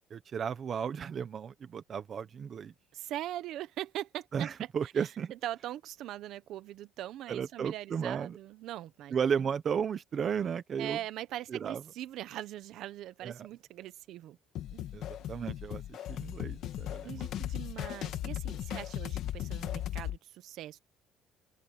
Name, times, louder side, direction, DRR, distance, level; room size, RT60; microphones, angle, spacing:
voice 1, 0.1-2.7 4.3-5.3 7.3-8.4 9.1-11.0 11.5-11.8 13.2-13.5 14.9-17.3, right 7 dB, 30° right, 0.9 m, -34 dB
voice 2, 2.9-4.5 4.8-4.9 5.3-9.5 10.8-14.4 14.7-14.8 17.0-20.8, right 13 dB, 60° right, 0.9 m, -41 dB
sound 1, 14.6-20.2, left 12 dB, 55° left, 2.2 m, -37 dB
open air
cardioid pair, 175°, 0 cm